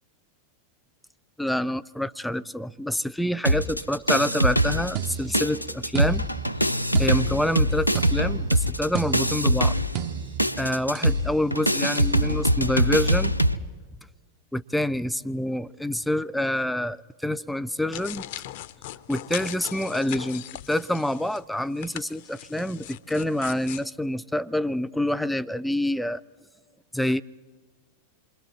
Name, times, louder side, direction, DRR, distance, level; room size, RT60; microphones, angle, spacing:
voice 1, 1.4-6.3 7.0-9.7 10.6-13.3 14.5-18.3 19.1-26.2 26.9-27.2, left 1 dB, 5° left, 15 dB, 0.5 m, -27 dB
sound 1, 3.5-5.1 5.3-13.6, equal, 90° left, 0.6 m, -23 dB
sound 2, 5.0-11.2 12.0-12.2, right 9 dB, 40° right, 0.7 m, -35 dB
sound 3, 17.9-21.4 21.8-23.9, left 14 dB, 50° left, 0.6 m, -39 dB
28.0 x 23.0 x 4.3 m, 1.4 s
figure-of-eight pair, 90°, 0 cm